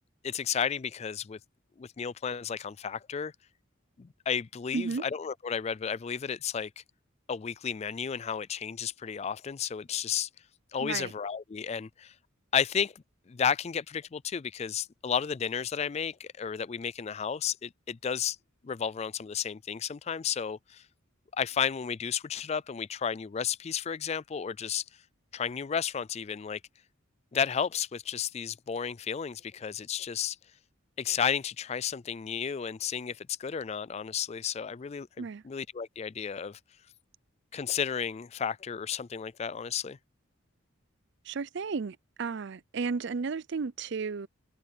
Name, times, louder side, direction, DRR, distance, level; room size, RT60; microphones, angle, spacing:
voice 1, 0.2-1.4 1.8-3.3 4.0-6.8 7.3-10.3 10.7-12.1 12.5-12.9 13.3-18.4 18.6-20.8 21.3-24.8 25.3-26.6 27.3-30.4 31.0-36.6 37.5-40.0, left 7 dB, 30° left, 0.3 m, -32 dB
voice 2, 4.7-5.0 10.8-11.1 35.2-35.4 41.2-44.3, right 4 dB, 55° right, 0.5 m, -33 dB
open air
head